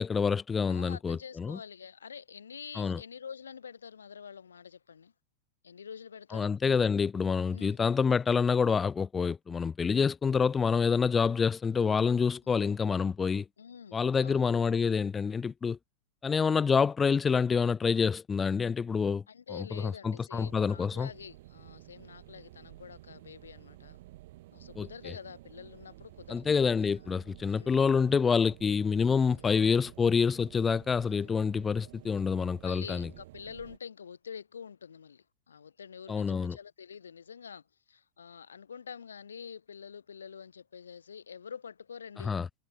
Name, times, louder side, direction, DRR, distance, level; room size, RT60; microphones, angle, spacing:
voice 1, 0.0-1.6 2.8-3.0 6.3-13.4 13.9-15.8 16.2-19.2 19.5-21.1 24.8-25.1 26.3-33.1 36.1-36.6 42.2-42.5, left 5 dB, 15° left, 2.7 m, -27 dB
voice 2, 0.7-5.1 5.6-6.5 7.5-7.8 12.4-12.7 13.6-14.5 19.3-24.0 24.5-26.6 27.5-27.8 29.0-29.5 31.0-31.3 32.6-37.6 37.9-42.3, left 7 dB, 70° left, 7.0 m, -47 dB
sound 1, 20.3-33.8, right 17 dB, 55° right, 5.2 m, -52 dB
figure-of-eight pair, 90°, 0 cm